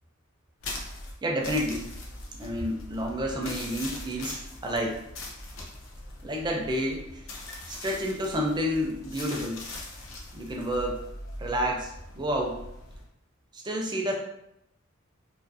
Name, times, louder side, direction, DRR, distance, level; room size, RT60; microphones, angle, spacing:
sound 1, 0.6-13.1, left 2 dB, 65° left, 0.5 m, -41 dB
voice 1, 1.2-1.9 2.4-5.0 6.2-7.1 7.7-9.6 10.3-11.0 11.4-12.6 13.5-14.1, equal, 20° right, 0 dB, 0.4 m, -29 dB
2.6 x 2.5 x 2.6 m, 0.81 s
head